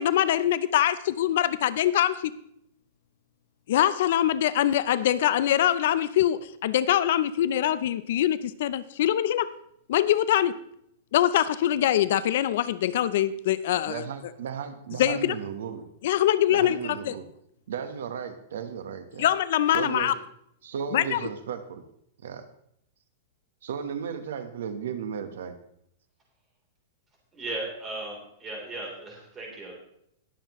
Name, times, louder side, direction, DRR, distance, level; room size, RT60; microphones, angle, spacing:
voice 1, 0.0-2.2 3.7-9.5 9.9-10.6 11.1-14.1 15.0-15.4 16.0-17.2 19.2-20.1 20.9-21.2, left 11 dB, 55° left, 16 dB, 0.5 m, -23 dB
voice 2, 13.8-15.9 16.5-17.3 17.7-19.3 19.7-20.1 20.6-21.8 22.2-22.4 23.6-25.6, right 7 dB, 75° right, 9 dB, 1.1 m, -35 dB
voice 3, 27.3-29.8, right 2 dB, 15° right, -1 dB, 3.4 m, -36 dB
20.0 x 7.4 x 3.0 m, 0.72 s
supercardioid pair, 165°, 0 cm